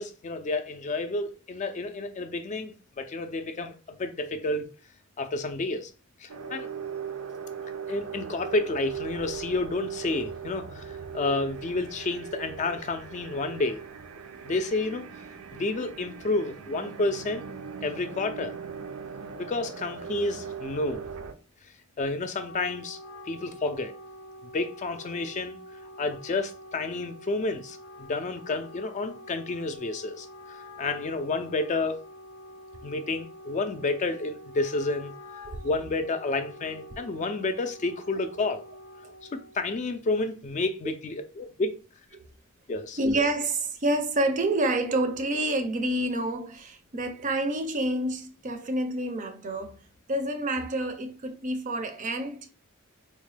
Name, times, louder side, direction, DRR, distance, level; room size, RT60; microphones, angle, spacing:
voice 1, 0.0-4.7 5.2-5.9 6.2-6.7 7.9-13.8 14.4-15.0 15.5-17.4 17.8-18.5 19.4-21.0 22.0-23.0 23.2-23.9 24.5-25.6 26.0-32.1 32.8-35.1 35.6-38.6 39.3-41.8 42.7-43.0, left 2 dB, 35° left, 0.3 m, -30 dB
sound 1, 6.3-21.3, right 6 dB, 90° right, 0.5 m, -39 dB
Wind instrument woodwind instrument, 22.2-39.7, left 1 dB, 85° left, 0.6 m, -47 dB
voice 2, 43.0-49.7 50.1-52.5, right 1 dB, 35° right, 0.4 m, -28 dB
3.8 x 2.1 x 3.2 m
head